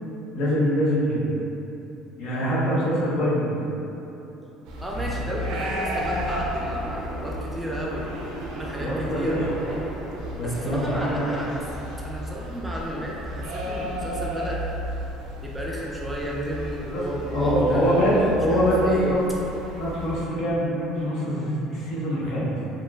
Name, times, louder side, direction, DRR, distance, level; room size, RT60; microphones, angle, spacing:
voice 1, 0.3-1.3 2.2-3.5 8.8-9.4 10.3-11.3 16.9-17.0 17.3-19.3 19.8-22.5, equal, 65° left, -6 dB, 0.6 m, -23 dB
sound 1, 4.3-11.9, right 1 dB, 40° left, 0.9 m, -39 dB
sound 2, 4.7-20.3, equal, 75° right, 0.4 m, -33 dB
voice 2, 4.8-8.1 8.5-9.4 10.4-11.6 12.0-14.6 15.4-19.1, equal, 10° right, -4 dB, 0.3 m, -33 dB
2.8 x 2.3 x 2.3 m, 3.0 s
cardioid pair, 120°, 0 cm